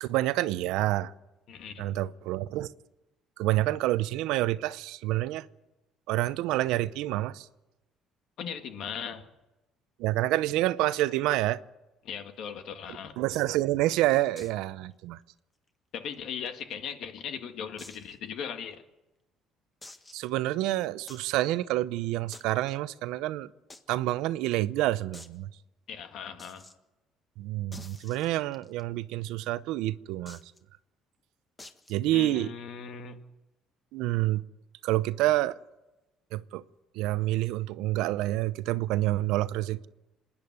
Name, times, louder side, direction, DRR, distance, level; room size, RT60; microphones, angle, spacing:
voice 1, 0.0-1.1 1.8-2.7 3.4-5.5 6.1-7.5 10.0-11.6 13.2-15.2 20.1-23.5 23.9-25.5 27.4-30.4 31.9-32.5 33.9-34.4 34.8-35.6 36.3-36.6 36.9-39.9, right 16 dB, 85° right, 0.7 m, -28 dB
voice 2, 1.5-1.9 8.4-9.2 12.0-13.2 15.9-18.8 25.9-26.6 32.1-33.2, left 7 dB, 65° left, 2.0 m, -38 dB
sound 1, 13.3-13.6 14.4-14.6 14.9-15.0 15.4-15.5 16.1-16.9 17.8-18.1 18.7-18.8 19.8-20.3 21.1-21.3 22.3-22.8 23.7-23.8 24.1-24.2 24.4-24.5 25.1-25.4 26.4-26.7 27.7-28.8 30.3-30.6 31.6-32.0, left 2 dB, 15° left, 1.5 m, -49 dB
26.0 x 10.5 x 9.5 m
cardioid pair, 110°, 0 cm